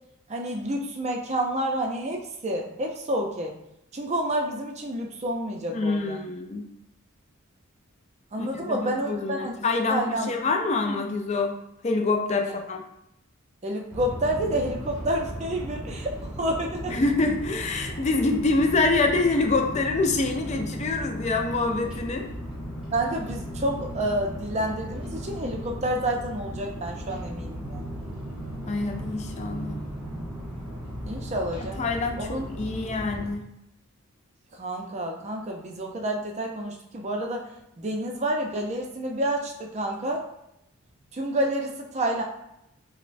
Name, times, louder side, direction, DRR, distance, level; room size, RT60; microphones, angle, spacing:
voice 1, 0.3-3.5 3.9-6.2 8.3-9.5 9.9-10.3 12.4-12.5 13.6-16.1 16.4-16.9 22.9-27.9 31.0-31.8 32.2-32.5 34.5-37.5 37.8-40.2 41.1-42.2, right 1 dB, 30° right, 1 dB, 0.5 m, -29 dB
voice 2, 5.7-6.7 8.4-11.6 11.8-12.8 16.9-22.3 28.7-29.8 31.6-32.3 32.6-33.5, left 3 dB, 30° left, 3 dB, 0.4 m, -26 dB
sound 1, 13.9-33.3, equal, 5° right, 0.8 m, -36 dB
5.1 x 2.1 x 2.6 m, 0.82 s
head